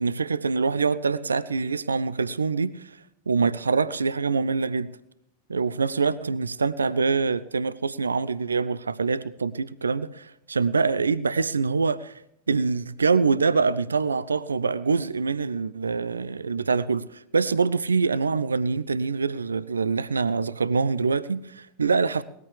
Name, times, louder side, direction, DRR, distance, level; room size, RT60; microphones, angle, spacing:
voice 1, 0.0-3.0 3.3-4.9 5.5-12.2 12.5-22.2, right 4 dB, 75° right, 0.5 m, -25 dB
19.5 x 13.5 x 3.4 m
figure-of-eight pair, 90°, 0 cm